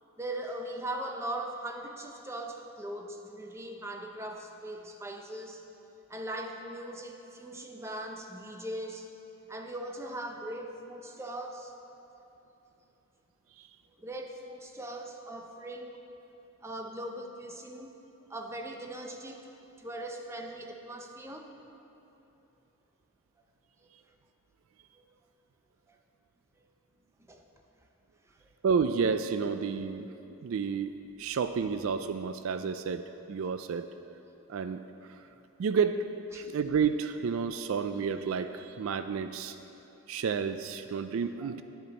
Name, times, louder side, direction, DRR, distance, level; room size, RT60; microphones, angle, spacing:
voice 1, 0.2-5.7 6.1-9.2 9.5-11.7 13.9-16.0 16.6-17.9 18.3-19.4 19.8-21.5 23.8-23.9 24.9-25.1 25.9-26.0 26.6-26.7 27.3-27.4 28.4-28.5 36.3-36.5 41.4-41.5, right 1 dB, 10° right, 3 dB, 0.6 m, -40 dB
voice 2, 28.6-30.1 30.4-33.9 34.5-35.2 35.6-36.0 36.3-39.6 40.1-41.6, right 6 dB, 65° right, 10 dB, 0.3 m, -30 dB
10.5 x 9.6 x 4.0 m, 2.9 s
head